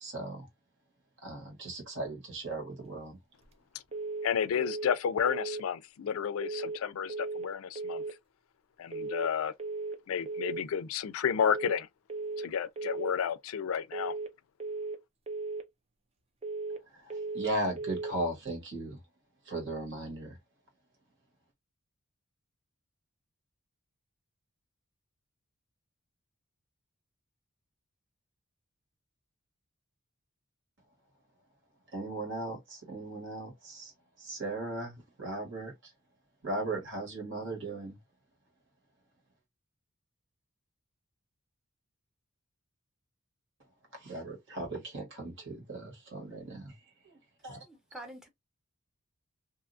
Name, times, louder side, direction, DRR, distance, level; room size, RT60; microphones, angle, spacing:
voice 1, 0.0-0.5 1.2-3.2 16.9-19.0 19.4-20.4 31.9-33.9 34.2-35.7 36.4-38.0 43.9-46.7 47.0-47.2 47.4-47.7, right 2 dB, 60° right, 1.5 m, -37 dB
sound 1, 3.9-4.3 4.6-5.0 5.3-5.7 6.4-6.8 7.1-7.5 7.8-8.2 8.9-9.3 9.6-10.0 10.3-10.7 11.4-11.8 12.1-12.5 12.8-13.2 13.9-14.3 14.6-15.0 15.3-15.7 16.4-16.8 17.1-17.5 17.8-18.2, right 3 dB, 30° right, 0.4 m, -36 dB
voice 2, 4.2-8.0 8.8-9.5 10.1-11.9 12.4-14.1, left 7 dB, 75° left, 0.4 m, -31 dB
voice 3, 47.6-48.3, right 1 dB, 5° right, 0.7 m, -46 dB
2.7 x 2.3 x 2.5 m
head